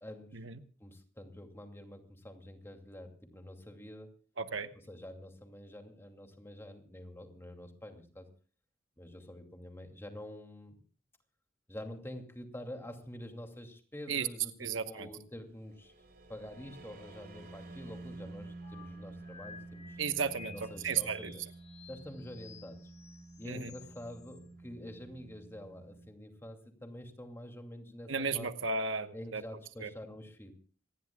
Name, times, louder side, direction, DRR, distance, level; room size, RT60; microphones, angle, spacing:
voice 1, 0.0-0.5 0.8-4.2 4.7-8.3 9.0-10.8 11.7-15.9 16.3-20.0 20.4-21.4 21.9-22.9 23.4-28.5 29.1-30.5, left 1 dB, 15° left, 4 dB, 2.5 m, -47 dB
voice 2, 4.4-4.7 14.1-14.3 14.6-15.1 20.0-20.5 20.8-21.3 23.4-23.7 28.1-29.4 29.8-29.9, right 5 dB, 70° right, 10 dB, 1.1 m, -34 dB
sound 1, 15.4-26.1, right 2 dB, 55° right, 5.0 m, -50 dB
sound 2, 18.6-24.4, left 7 dB, 35° left, 2.0 m, -55 dB
26.5 x 19.0 x 2.3 m, 0.40 s
head